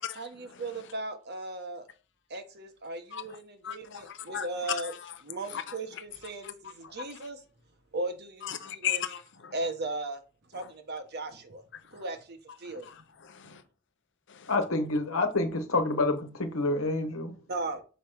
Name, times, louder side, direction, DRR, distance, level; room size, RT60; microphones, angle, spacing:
voice 1, 0.2-1.9 2.3-4.9 5.2-7.4 7.9-9.0 9.5-10.2 10.5-11.6 11.9-12.9 13.4-13.6 17.5-17.8, right 2 dB, 55° right, 1.0 m, -37 dB
voice 2, 3.6-4.5 4.8-5.1 5.5-5.7 6.8-7.2 8.4-9.5 11.9-12.0 12.8-13.6 14.3-14.5, left 10 dB, 60° left, 0.7 m, -37 dB
voice 3, 14.5-17.3, left 2 dB, 85° left, 1.2 m, -28 dB
5.3 x 5.0 x 4.5 m
head